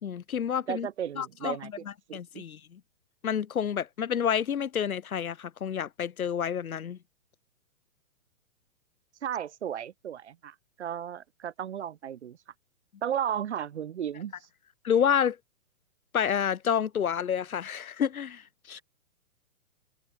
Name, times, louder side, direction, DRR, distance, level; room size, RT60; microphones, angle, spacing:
voice 1, 0.0-0.9 1.2-2.8 3.2-7.0 14.8-15.4 16.1-18.8, left 8 dB, 85° left, 2.1 m, -29 dB
voice 2, 0.7-1.7 2.1-2.4 9.2-12.4 13.0-14.3 18.8-18.9, right 9 dB, 50° right, 4.8 m, -34 dB
hypercardioid pair, 175°, 42 cm